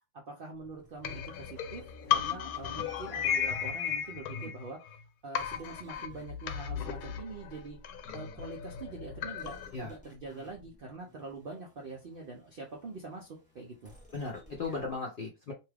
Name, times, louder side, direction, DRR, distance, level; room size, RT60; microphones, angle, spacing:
voice 1, 0.3-1.8 2.1-4.9 5.2-7.8 8.1-13.9, right 3 dB, 65° right, 0 dB, 0.5 m, -44 dB
sound 1, 0.5-4.3 5.4-8.4 9.4-15.0, left 1 dB, 5° left, 0.7 m, -55 dB
sound 2, 1.0-5.0 5.3-9.7, left 9 dB, 75° left, 1.0 m, -35 dB
voice 2, 14.1-15.5, left 3 dB, 60° left, -1 dB, 0.5 m, -37 dB
2.7 x 2.3 x 3.2 m, 0.26 s
omnidirectional pair, 1.6 m